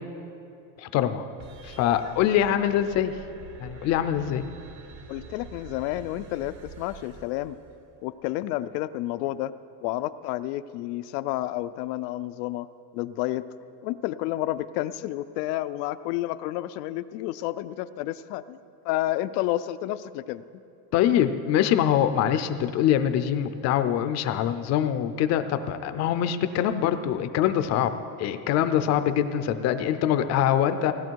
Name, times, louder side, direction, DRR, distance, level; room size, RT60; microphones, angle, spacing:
voice 1, 0.8-1.2 1.6-3.1 3.6-4.4 20.9-27.9 28.2-30.9, left 10 dB, 35° left, 10 dB, 0.5 m, -24 dB
sound 1, 1.4-8.0, right 4 dB, 35° right, 0.8 m, -46 dB
voice 2, 5.1-7.6 8.0-9.5 9.8-12.7 12.9-13.5 13.8-18.6 18.8-20.6, left 15 dB, 85° left, 13 dB, 0.6 m, -30 dB
17.0 x 12.0 x 4.6 m, 2.7 s
cardioid pair, 170°, 47 cm